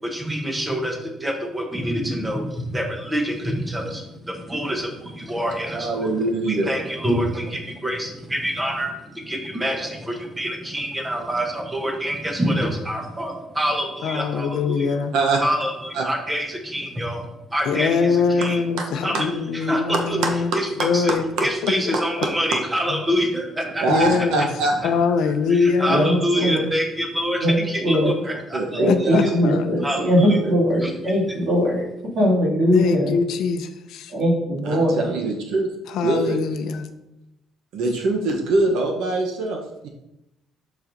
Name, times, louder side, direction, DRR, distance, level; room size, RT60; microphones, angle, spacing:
voice 1, 0.0-14.9 15.4-18.6 19.0-19.1 19.6-20.2 20.5-20.7 20.9-21.1 21.4-24.5 25.2-29.3 29.8-30.4 30.8-30.9, equal, 10° right, 2 dB, 0.9 m, -26 dB
voice 2, 5.7-6.7 15.1-15.4 15.9-16.1 21.9-22.0 23.8-24.7 28.5-29.2 30.4-31.0 34.7-35.7 36.0-36.4 37.7-39.9, right 3 dB, 70° right, 2 dB, 0.8 m, -23 dB
voice 3, 14.0-15.1 17.6-20.5 20.8-21.3 21.6-22.0 22.9-23.0 23.9-24.5 24.8-26.3 28.8-29.6 32.7-34.1 35.9-36.9, left 5 dB, 65° left, 7 dB, 0.6 m, -23 dB
voice 4, 25.9-26.7 27.4-27.6 27.8-28.1 28.8-31.8 32.1-33.1 34.1-35.0, equal, 45° right, -5 dB, 2.3 m, -20 dB
7.2 x 6.0 x 2.6 m, 0.90 s
cardioid pair, 180°, 0 cm